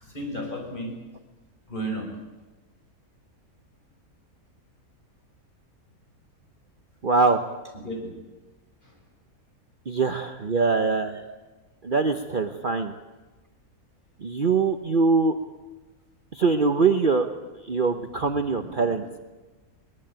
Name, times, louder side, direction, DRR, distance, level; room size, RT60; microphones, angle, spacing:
voice 1, 0.0-0.9 1.7-2.1 7.8-8.1 8.8-9.0 18.2-18.9, right 1 dB, 35° left, 1 dB, 6.3 m, -34 dB
voice 2, 7.0-7.4 9.9-11.3 11.8-12.9 14.2-15.4 16.3-17.3 17.6-19.2, right 4 dB, 40° right, 6 dB, 1.1 m, -23 dB
22.0 x 20.5 x 9.0 m, 1.2 s
omnidirectional pair, 1.6 m